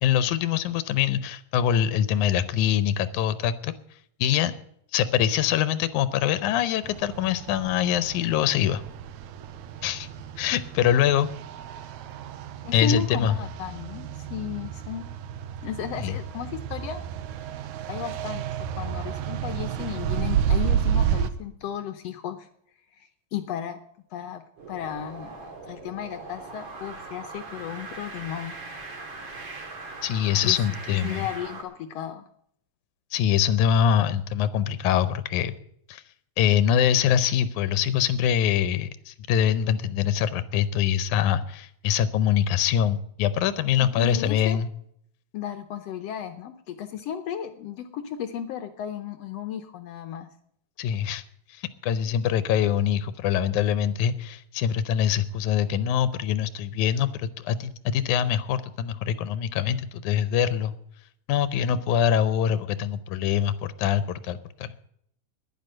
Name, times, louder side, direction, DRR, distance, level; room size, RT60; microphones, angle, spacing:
voice 1, 0.0-3.7 4.2-4.5 4.9-8.8 9.8-10.1 10.4-11.3 12.7-13.4 16.0-16.1 30.0-31.2 33.1-35.5 35.9-36.0 36.4-44.7 50.8-51.2 51.8-60.7 61.3-64.7, left 9 dB, 90° left, 14 dB, 2.2 m, -24 dB
sound 1, 6.8-21.3, right 9 dB, 80° right, 2.1 m, -31 dB
voice 2, 12.6-15.1 15.6-17.0 17.9-18.4 18.8-22.5 23.0-23.8 24.1-24.4 24.7-28.6 30.4-30.6 30.9-32.3 43.7-44.6 45.3-50.3, left 9 dB, 70° left, 8 dB, 1.6 m, -34 dB
sound 2, 24.6-31.6, right 3 dB, 50° right, 3.4 m, -40 dB
10.5 x 10.5 x 7.7 m, 0.69 s
omnidirectional pair, 3.4 m